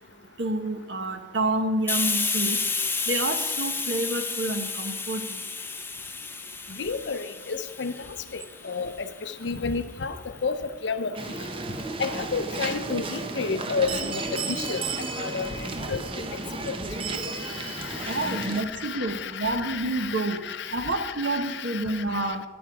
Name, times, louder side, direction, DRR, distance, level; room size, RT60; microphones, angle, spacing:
voice 1, 0.4-2.6 3.1-5.4 18.1-20.4 20.7-22.4, right 2 dB, 65° right, 6 dB, 1.1 m, -28 dB
Hiss, 1.9-9.3, left 4 dB, 10° left, 0.6 m, -31 dB
voice 2, 6.8-7.9 8.3-11.2 12.0-14.8 15.2-16.2 16.7-16.8 17.1-22.4, left 5 dB, 65° left, 12 dB, 0.6 m, -32 dB
sound 1, 11.1-18.6, right 3 dB, 30° right, 0.7 m, -33 dB
10.0 x 9.0 x 4.8 m, 1.2 s
head